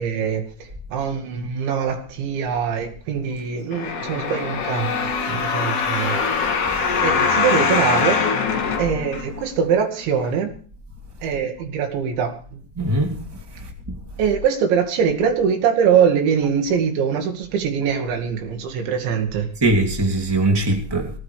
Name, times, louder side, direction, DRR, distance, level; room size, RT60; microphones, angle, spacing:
voice 1, 0.0-6.2 7.0-8.2 8.8-10.5 11.2-12.4 14.2-19.5, right 7 dB, 75° right, 4.5 m, -22 dB
sound 1, 3.7-9.6 10.2-10.3, left 5 dB, 50° left, 3.4 m, -22 dB
voice 2, 12.7-13.9 19.5-21.1, right 2 dB, 10° right, 1.3 m, -22 dB
21.0 x 14.0 x 3.4 m
omnidirectional pair, 5.4 m